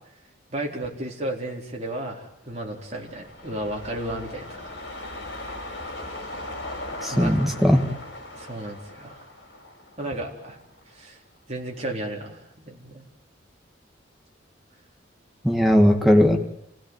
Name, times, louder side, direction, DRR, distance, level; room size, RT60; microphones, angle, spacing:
voice 1, 0.5-4.7 7.1-7.3 8.3-9.3 10.0-10.6 10.9-11.2 11.5-13.0, right 1 dB, 35° right, -1 dB, 4.2 m, -33 dB
sound 1, 2.5-11.0 11.4-11.5, left 1 dB, 60° left, 5.9 m, -38 dB
voice 2, 7.0-7.8 15.4-16.4, equal, ahead, 2 dB, 2.2 m, -18 dB
30.0 x 16.5 x 9.5 m, 0.80 s
head